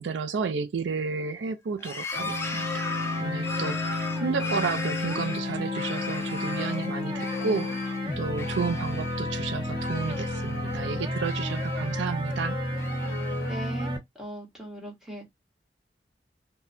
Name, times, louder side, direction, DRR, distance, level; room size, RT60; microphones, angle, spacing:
voice 1, 0.0-12.6, right 5 dB, 80° right, 0.4 m, -32 dB
sound 1, 1.8-6.9 7.2-8.0 8.3-9.3 9.6-10.8 11.2-12.2 12.7-13.7, left 3 dB, 15° left, 0.4 m, -38 dB
sound 2, 2.1-14.0, left 1 dB, 30° right, 1.4 m, -31 dB
voice 2, 13.5-15.3, right 1 dB, 5° right, 1.2 m, -39 dB
4.2 x 2.2 x 2.6 m
head